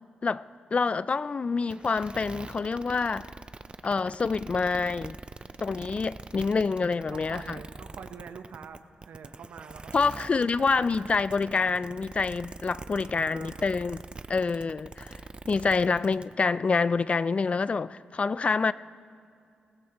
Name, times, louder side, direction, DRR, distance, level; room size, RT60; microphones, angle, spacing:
voice 1, 0.7-3.3 3.8-5.2 5.6-7.6 9.9-14.0 14.3-15.2 15.5-18.7, left 4 dB, 40° left, 0.3 m, -27 dB
sound 1, 1.7-16.3, right 3 dB, 30° right, 0.4 m, -43 dB
voice 2, 7.1-10.3 10.6-11.3 12.9-13.8, right 6 dB, 80° right, 0.9 m, -46 dB
20.5 x 16.0 x 3.0 m
cardioid pair, 80°, 3 cm